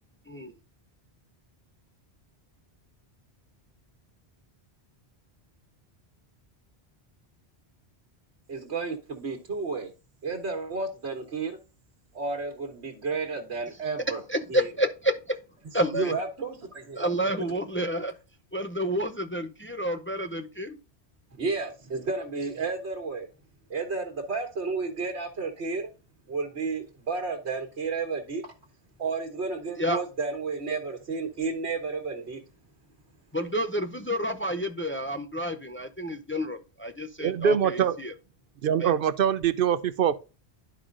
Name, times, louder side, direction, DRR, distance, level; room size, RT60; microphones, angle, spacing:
voice 1, 8.5-9.9 10.2-11.6 12.1-14.2 14.5-14.6 15.9-17.1 21.4-23.3 23.7-25.9 26.3-28.4 29.0-32.4, right 4 dB, 85° right, 1.5 m, -32 dB
voice 2, 14.3-15.4 15.7-16.1 17.0-18.1 18.5-20.8 29.8-30.0 33.3-38.1 38.8-38.9, equal, 20° left, 0.4 m, -29 dB
voice 3, 37.2-38.0 38.6-40.1, right 8 dB, 65° right, 0.7 m, -23 dB
11.5 x 4.9 x 2.5 m
omnidirectional pair, 1.1 m